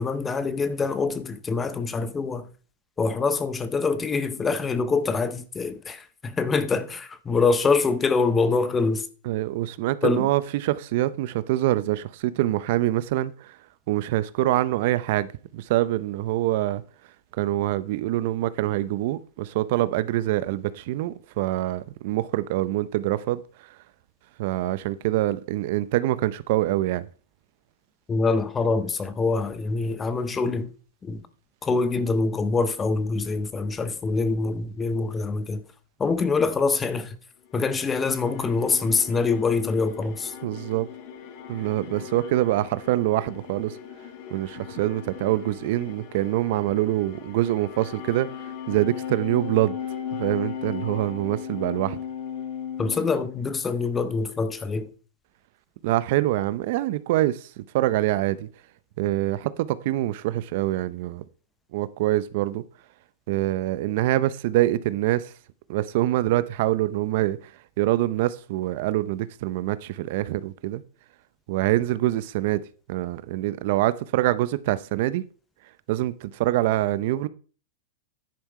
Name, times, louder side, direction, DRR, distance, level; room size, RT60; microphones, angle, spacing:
voice 1, 0.0-2.5 3.0-9.1 10.0-10.3 28.1-30.7 31.0-31.2 31.6-35.6 36.0-37.2 37.5-40.3 52.8-54.9, left 4 dB, 15° left, 0.7 m, -25 dB
voice 2, 9.2-13.6 13.9-16.8 17.4-23.4 24.4-27.1 40.4-40.9 41.5-43.8 44.3-49.8 50.2-52.0 55.8-58.5 59.0-61.2 61.7-62.6 63.3-65.3 65.7-67.5 67.8-70.8 71.5-72.6 72.9-75.2 75.9-77.3, right 15 dB, 55° right, 0.6 m, -25 dB
sound 1, 37.5-53.8, left 8 dB, 45° left, 1.5 m, -38 dB
10.5 x 5.5 x 4.7 m
supercardioid pair, 145°, 0 cm